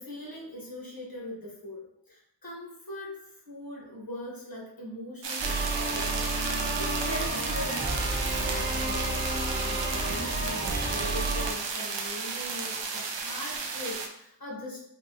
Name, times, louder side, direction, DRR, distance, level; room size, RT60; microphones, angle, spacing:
voice 1, 0.0-6.1 6.8-14.8, left 1 dB, 55° left, -4 dB, 1.3 m, -41 dB
sound 1, 5.2-14.1, right 4 dB, 80° right, 0.5 m, -33 dB
sound 2, 5.4-11.5, right 2 dB, 25° right, 0.6 m, -31 dB
3.6 x 2.8 x 2.8 m, 0.75 s
wide cardioid pair, 60°, 43 cm